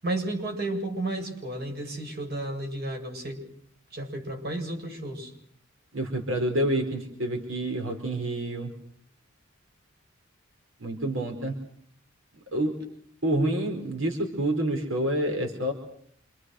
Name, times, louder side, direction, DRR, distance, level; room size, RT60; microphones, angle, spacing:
voice 1, 0.0-3.4 3.9-5.3, right 2 dB, 50° right, 3 dB, 8.0 m, -32 dB
voice 2, 5.9-8.7 10.8-11.6 12.5-12.8 13.2-15.7, right 1 dB, 85° right, 4 dB, 4.9 m, -28 dB
28.5 x 28.0 x 6.5 m, 0.63 s
head